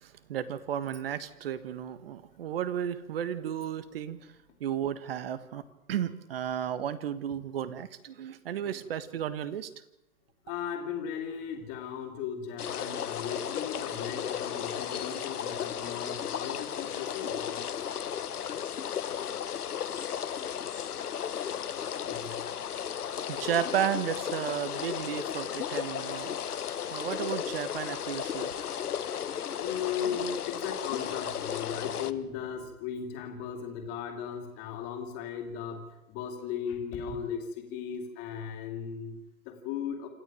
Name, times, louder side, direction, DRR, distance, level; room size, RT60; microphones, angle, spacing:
voice 1, 0.0-4.3 4.6-5.6 5.9-9.7 23.3-26.5 26.9-28.5, right 9 dB, 40° right, 15 dB, 1.6 m, -33 dB
voice 2, 10.4-17.6 22.0-22.4 29.6-40.1, left 7 dB, 20° left, 4 dB, 2.9 m, -37 dB
sound 1, 12.6-32.1, left 9 dB, 90° left, 1.3 m, -34 dB
27.0 x 13.5 x 9.1 m, 0.89 s
hypercardioid pair, 165°, 44 cm